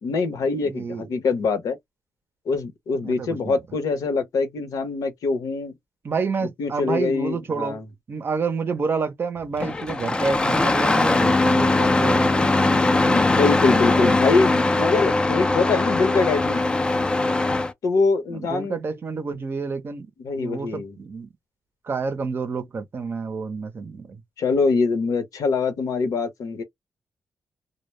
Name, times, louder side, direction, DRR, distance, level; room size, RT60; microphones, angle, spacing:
voice 1, 0.0-1.8 2.5-5.7 6.6-7.8 13.1-16.6 17.8-18.8 20.2-21.0 24.4-26.6, left 4 dB, 75° left, 0.8 m, -23 dB
voice 2, 0.6-1.1 3.0-3.6 6.0-7.8 8.1-13.2 13.7-14.3 18.3-20.1 20.4-21.3 21.8-24.2, right 4 dB, 40° right, 0.5 m, -29 dB
Engine starting, 9.6-17.7, left 2 dB, 15° left, 0.3 m, -20 dB
2.1 x 2.0 x 3.0 m
wide cardioid pair, 140°, 6 cm